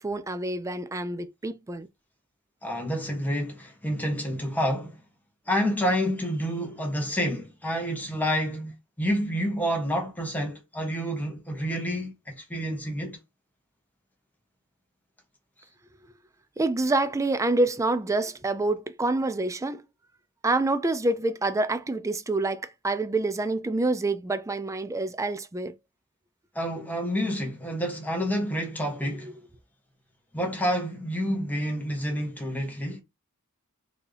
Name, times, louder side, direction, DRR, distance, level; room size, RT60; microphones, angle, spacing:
voice 1, 0.0-1.9 16.6-19.8 20.4-25.8, right 2 dB, 15° right, 0.4 m, -27 dB
voice 2, 2.6-5.0 5.5-13.2 26.5-29.3 30.3-33.0, equal, 10° left, 1.3 m, -29 dB
4.3 x 2.8 x 3.3 m
head